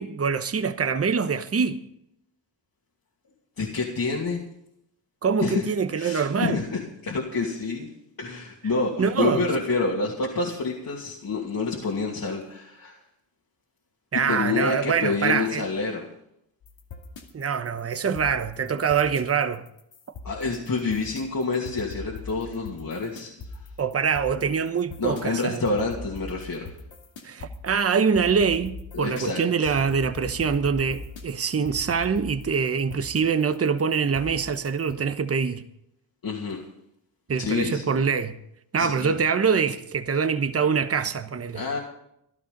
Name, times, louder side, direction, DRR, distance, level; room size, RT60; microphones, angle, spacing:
voice 1, 0.0-1.8 5.2-6.6 9.0-9.5 14.1-15.7 17.3-19.7 23.8-25.6 27.2-35.6 37.3-38.4 38.7-41.6, right 6 dB, 30° right, 1.0 m, -24 dB
voice 2, 3.6-4.4 5.4-5.7 5.9-7.9 8.2-13.0 14.1-16.0 20.2-23.6 25.0-26.7 28.9-29.7 36.2-36.6 37.4-38.0 38.8-39.1 41.5-41.8, left 3 dB, 50° left, 2.6 m, -28 dB
sound 1, 16.6-34.9, left 3 dB, 75° left, 2.5 m, -41 dB
14.5 x 12.0 x 5.3 m
cardioid pair, 65°, 45 cm